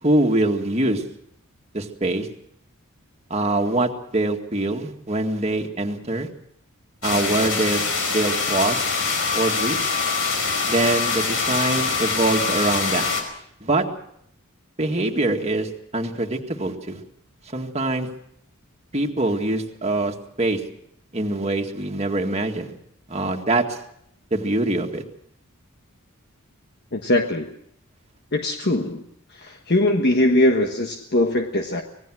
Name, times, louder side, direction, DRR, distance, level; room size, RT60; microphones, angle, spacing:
voice 1, 0.0-1.0 1.7-2.3 3.3-6.3 7.0-7.8 8.1-8.8 9.3-9.8 10.7-13.1 13.6-13.8 14.8-17.0 17.5-18.1 18.9-20.6 21.1-22.7 23.1-23.8 24.3-25.0, right 2 dB, 30° right, 2 dB, 2.0 m, -23 dB
sound 1, 7.0-13.2, left 4 dB, 65° left, 4.9 m, -24 dB
voice 2, 26.9-27.5 28.3-29.0 29.3-31.8, left 1 dB, 50° left, 4 dB, 1.3 m, -21 dB
26.0 x 19.0 x 6.3 m, 0.72 s
head